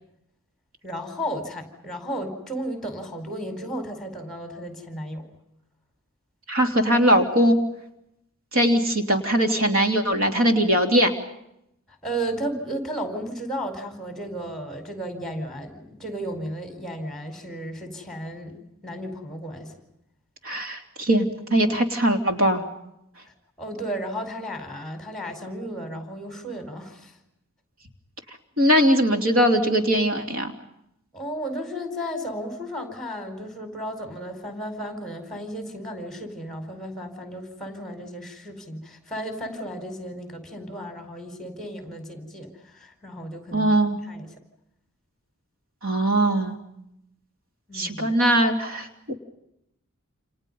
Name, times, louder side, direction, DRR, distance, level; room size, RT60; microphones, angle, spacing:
voice 1, 0.8-5.2 11.9-18.6 18.8-19.8 23.3-27.2 31.1-43.7 44.1-44.3 47.7-48.1, equal, ahead, 5 dB, 4.8 m, -34 dB
voice 2, 6.5-7.6 8.5-11.1 20.4-22.6 28.6-30.5 43.5-44.0 45.8-46.6 47.7-49.1, right 1 dB, 65° right, 4 dB, 3.2 m, -21 dB
29.5 x 29.0 x 5.5 m, 0.82 s
head